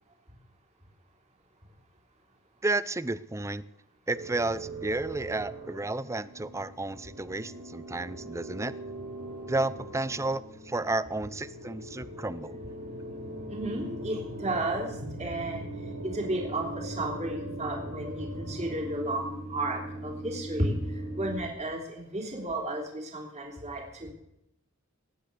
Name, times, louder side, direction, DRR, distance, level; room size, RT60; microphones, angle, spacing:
voice 1, 2.6-3.6 4.1-8.7 9.5-12.6, right 2 dB, 15° right, 16 dB, 0.5 m, -32 dB
sound 1, 4.1-21.4, right 1 dB, 80° right, 5.4 m, -40 dB
voice 2, 13.5-24.1, right 1 dB, 35° right, 0 dB, 3.4 m, -33 dB
20.0 x 9.3 x 6.7 m, 0.82 s
head